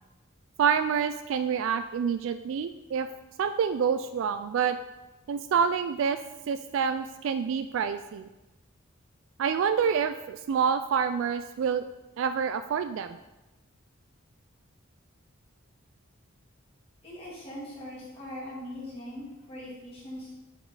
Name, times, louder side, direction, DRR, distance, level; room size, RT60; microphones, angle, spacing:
voice 1, 0.6-3.1 3.4-4.8 5.3-6.2 6.5-8.3 9.4-11.8 12.2-13.2, right 7 dB, 65° right, 9 dB, 0.3 m, -27 dB
voice 2, 17.0-20.3, left 1 dB, 30° left, -8 dB, 2.8 m, -41 dB
8.0 x 5.1 x 3.9 m, 1.0 s
head